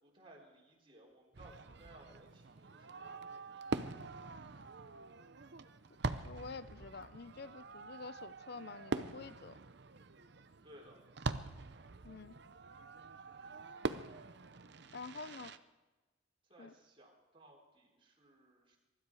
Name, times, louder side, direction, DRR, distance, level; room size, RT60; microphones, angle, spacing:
voice 1, 0.0-4.0 10.6-11.0 16.5-18.8, right 1 dB, 25° right, -3 dB, 3.9 m, -60 dB
Fireworks, 1.3-15.6, right 3 dB, 55° right, 0.7 m, -44 dB
voice 2, 6.2-9.6 12.0-12.4 14.9-15.6 16.6-16.7, left 4 dB, 50° left, 16 dB, 0.6 m, -48 dB
23.5 x 12.5 x 4.8 m, 1.2 s
head